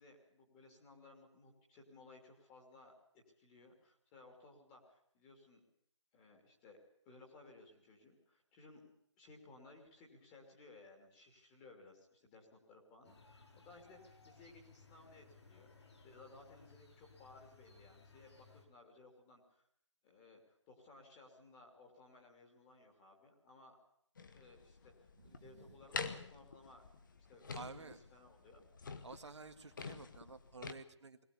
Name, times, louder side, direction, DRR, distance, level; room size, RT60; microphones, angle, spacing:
voice 1, 0.0-5.6 6.1-8.9 9.2-15.7 16.0-19.7 20.0-23.8 24.3-24.9 25.2-28.7, left 3 dB, 15° left, 1 dB, 3.0 m, -60 dB
sound 1, 13.0-18.7, left 4 dB, 65° left, 4.7 m, -62 dB
sound 2, 24.2-30.7, left 5 dB, 40° left, 1.5 m, -47 dB
voice 2, 25.2-25.8 27.5-28.0 29.0-31.2, right 4 dB, 70° right, 7 dB, 1.9 m, -52 dB
21.5 x 18.0 x 8.5 m, 0.69 s
hypercardioid pair, 170°, 15 cm